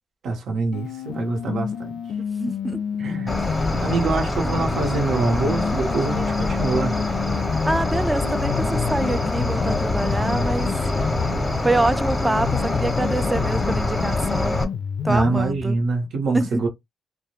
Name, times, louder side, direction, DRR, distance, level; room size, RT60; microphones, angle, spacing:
voice 1, 0.2-2.0 3.0-3.3 3.8-7.0 15.1-16.7, right 3 dB, 70° right, 0.8 m, -24 dB
sound 1, 0.7-4.0 4.7-11.7 12.2-15.7, left 8 dB, 70° left, 0.3 m, -29 dB
voice 2, 2.4-2.8 3.4-3.8 4.4-4.7 7.6-10.7 11.6-14.7 15.0-15.8 16.3-16.6, right 2 dB, 10° right, 0.3 m, -26 dB
Cricket, 3.3-14.7, left 2 dB, 10° left, 0.7 m, -25 dB
2.2 x 2.0 x 2.8 m
cardioid pair, 90°, 0 cm